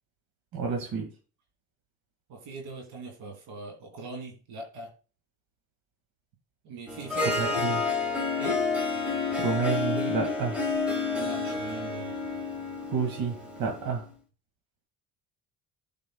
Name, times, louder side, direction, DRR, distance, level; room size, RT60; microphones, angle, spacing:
voice 1, 0.5-1.1 7.4-7.8 9.4-10.6 12.9-14.1, right 5 dB, 70° right, 0 dB, 1.9 m, -30 dB
voice 2, 2.3-4.9 6.6-7.7 8.4-8.6 11.2-12.1, right 3 dB, 85° right, 1 dB, 2.8 m, -40 dB
Harp, 6.9-14.0, left 4 dB, 5° right, 2.0 m, -29 dB
15.0 x 5.1 x 2.2 m, 0.35 s
supercardioid pair, 80°, 37 cm